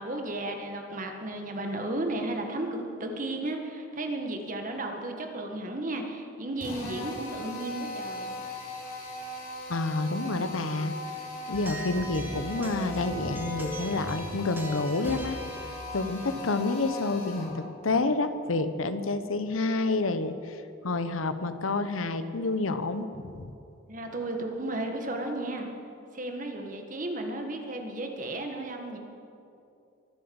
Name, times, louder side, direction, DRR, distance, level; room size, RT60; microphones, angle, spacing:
voice 1, 0.0-8.3 23.9-25.7 26.1-29.0, right 2 dB, 40° right, 3 dB, 1.7 m, -34 dB
Drill, 6.6-17.6, left 2 dB, 40° left, 3.5 m, -39 dB
voice 2, 9.7-10.9 11.5-15.4 15.9-23.5, left 3 dB, 90° left, 11 dB, 1.0 m, -29 dB
sound 1, 11.5-17.3, right 1 dB, 10° right, 1.6 m, -40 dB
23.5 x 8.0 x 7.1 m, 2.6 s
head